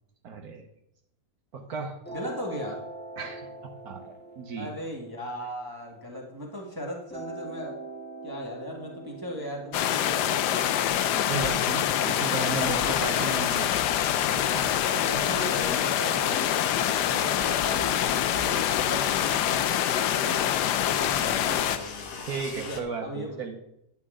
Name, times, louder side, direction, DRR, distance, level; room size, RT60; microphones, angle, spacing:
voice 1, 0.2-0.7 1.5-1.9 3.2-4.0 4.4-4.7 11.0-13.8 14.5-14.6 20.2-20.5 22.2-23.6, right 5 dB, 65° right, 3 dB, 1.4 m, -34 dB
sound 1, 2.0-6.4 7.1-12.0, right 3 dB, 5° left, 1.3 m, -43 dB
voice 2, 2.1-2.8 4.6-7.8 8.2-11.1 14.8-20.5 20.9-22.2 22.5-23.4, equal, 15° right, -1 dB, 1.4 m, -38 dB
sound 2, 9.7-21.8, left 11 dB, 80° left, 1.2 m, -25 dB
sound 3, 12.5-22.8, left 5 dB, 60° left, 1.4 m, -39 dB
10.5 x 8.9 x 3.7 m, 0.80 s
omnidirectional pair, 1.8 m